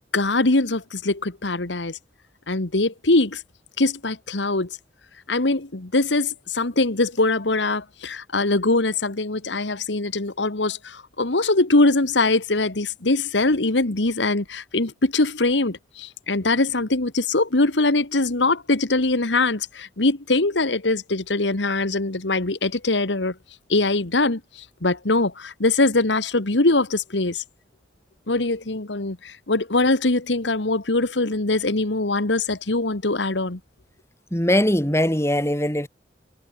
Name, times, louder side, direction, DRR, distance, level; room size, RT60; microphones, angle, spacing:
voice 1, 0.1-2.0 2.5-3.4 3.8-4.7 5.3-23.4 23.7-27.4 28.3-33.6, left 2 dB, 90° left, 1.8 m, -22 dB
voice 2, 34.3-35.9, left 1 dB, 15° left, 3.6 m, -21 dB
head